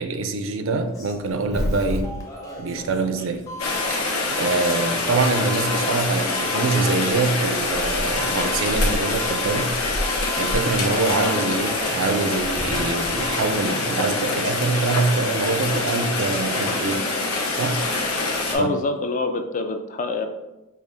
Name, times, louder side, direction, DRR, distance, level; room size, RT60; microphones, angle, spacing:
voice 1, 0.0-2.1 2.6-3.5 3.9-9.8 10.1-17.1 17.5-17.9 18.4-18.7, right 3 dB, 60° right, 7 dB, 0.4 m, -25 dB
Doorbell, 0.8-13.6, left 1 dB, 15° left, 0.7 m, -35 dB
Rain, 3.6-18.5, left 2 dB, 85° left, 0.8 m, -25 dB
voice 2, 18.5-20.3, left 3 dB, 35° left, 7 dB, 0.3 m, -25 dB
5.1 x 2.3 x 3.5 m, 0.99 s
head